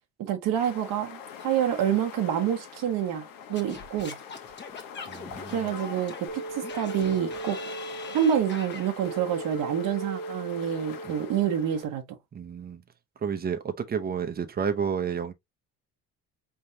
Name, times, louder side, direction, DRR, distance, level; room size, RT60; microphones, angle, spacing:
voice 1, 0.2-4.2 5.5-7.6 8.1-12.0, right 9 dB, 60° right, 1.0 m, -27 dB
sound 1, 0.5-11.9, left 7 dB, 70° left, 1.1 m, -44 dB
Singing / Scratching (performance technique), 3.6-8.9, left 5 dB, 30° left, 1.1 m, -43 dB
voice 2, 5.1-5.7 11.0-11.2 12.3-12.8 13.2-15.3, right 7 dB, 25° right, 0.7 m, -31 dB
sound 2, 6.3-11.8, right 3 dB, 80° right, 1.7 m, -38 dB
4.5 x 3.5 x 2.7 m
cardioid pair, 120°, 36 cm